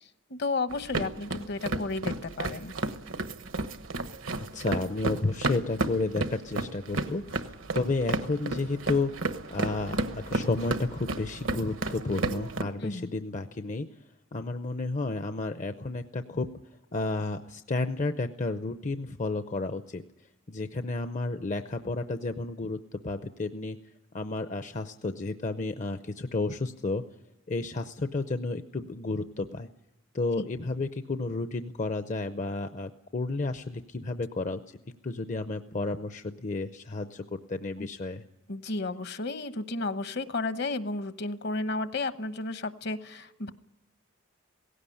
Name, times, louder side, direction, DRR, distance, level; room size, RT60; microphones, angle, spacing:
voice 1, 0.3-2.7 12.8-13.1 30.4-30.5 37.8-37.9 38.5-43.5, left 3 dB, 55° left, 12 dB, 1.0 m, -32 dB
sound 1, 0.7-12.6, right 2 dB, 75° right, 1.2 m, -33 dB
voice 2, 4.3-13.9 14.3-16.5 16.9-20.0 20.5-23.8 24.1-27.0 27.5-29.7 30.1-34.6 35.0-38.2, left 3 dB, 40° left, 9 dB, 0.6 m, -32 dB
18.0 x 16.5 x 10.0 m, 0.97 s
head